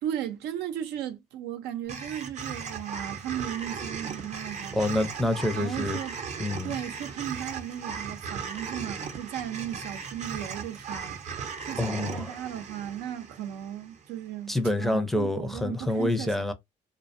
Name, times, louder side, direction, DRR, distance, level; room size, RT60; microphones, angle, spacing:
voice 1, 0.0-4.9 5.5-6.2 6.6-11.2 11.7-16.4, right 10 dB, 85° right, 0.6 m, -36 dB
sound 1, 1.9-14.2, right 6 dB, 45° right, 0.6 m, -37 dB
voice 2, 4.7-6.0 6.4-6.7 11.8-12.3 14.5-16.5, left 1 dB, ahead, 0.5 m, -27 dB
2.4 x 2.1 x 2.5 m
cardioid pair, 110°, 17 cm